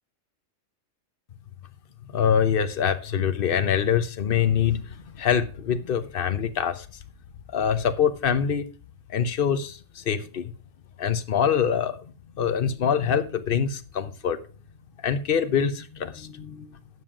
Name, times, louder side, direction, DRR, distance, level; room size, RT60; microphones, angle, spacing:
voice 1, 2.1-6.9 7.5-8.7 9.1-10.5 11.0-14.4 15.0-16.8, left 8 dB, 50° left, 1.0 m, -25 dB
9.5 x 7.6 x 4.8 m
omnidirectional pair, 1.3 m